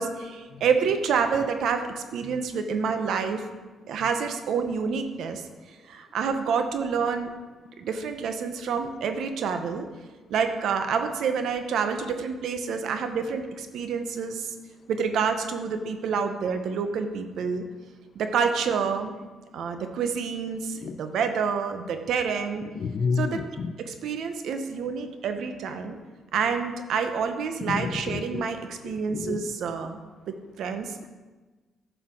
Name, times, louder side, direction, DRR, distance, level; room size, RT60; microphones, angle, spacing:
voice 1, 0.0-3.5 3.9-7.3 7.8-9.9 10.3-14.5 14.9-17.6 18.1-19.1 19.5-22.7 23.2-23.4 23.8-26.0 26.3-30.0 30.3-31.0, right 6 dB, 75° right, 7 dB, 1.0 m, -28 dB
voice 2, 22.8-23.7 27.7-28.5 29.1-29.4 29.8-29.9, left 5 dB, 55° left, 12 dB, 0.6 m, -30 dB
10.0 x 5.8 x 6.3 m, 1.3 s
cardioid pair, 90°, 0 cm